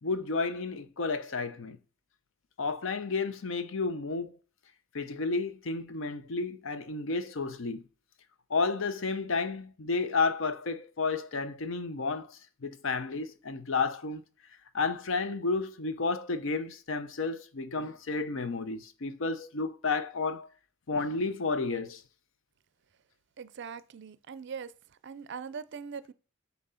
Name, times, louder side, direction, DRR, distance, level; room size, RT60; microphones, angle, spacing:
voice 1, 0.0-1.8 2.6-4.3 4.9-7.8 8.5-14.2 14.7-20.5 20.9-22.0, left 4 dB, 65° left, 0.6 m, -31 dB
voice 2, 23.4-24.7 25.0-26.1, right 6 dB, 55° right, 0.4 m, -41 dB
7.4 x 2.8 x 5.5 m
head